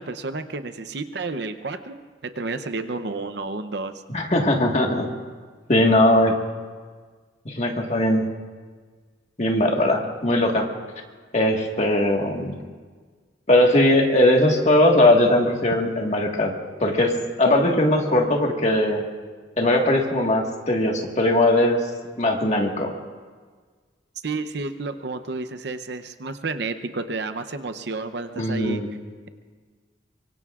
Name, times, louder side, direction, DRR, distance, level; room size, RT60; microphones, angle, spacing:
voice 1, 0.0-3.9 24.2-28.8, right 3 dB, 60° right, 10 dB, 0.7 m, -31 dB
voice 2, 4.1-5.1 5.7-6.4 7.4-8.2 9.4-10.7 11.3-12.5 13.5-16.5 16.8-19.0 19.6-21.8 22.2-22.9 28.3-28.9, left 1 dB, 35° left, 1 dB, 1.6 m, -19 dB
24.0 x 23.5 x 2.5 m, 1.5 s
head